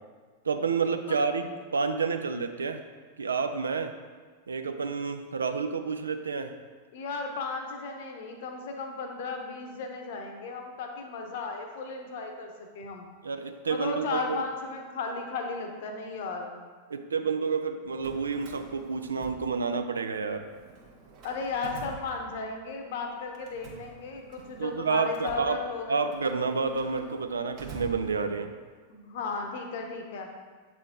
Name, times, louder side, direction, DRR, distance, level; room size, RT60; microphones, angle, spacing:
voice 1, 0.4-2.8 3.2-3.9 4.5-6.5 13.2-14.4 16.9-20.5 24.6-25.6 25.9-28.5, right 5 dB, 75° right, 7 dB, 0.4 m, -29 dB
voice 2, 6.9-13.1 13.7-16.7 21.2-26.0 28.9-30.3, left 4 dB, 55° left, 3 dB, 0.8 m, -35 dB
Drawer open or close, 17.8-20.0 20.3-22.7 23.3-28.6, right 4 dB, 40° right, 1.1 m, -47 dB
7.6 x 3.7 x 3.7 m, 1.5 s
figure-of-eight pair, 95°, 0 cm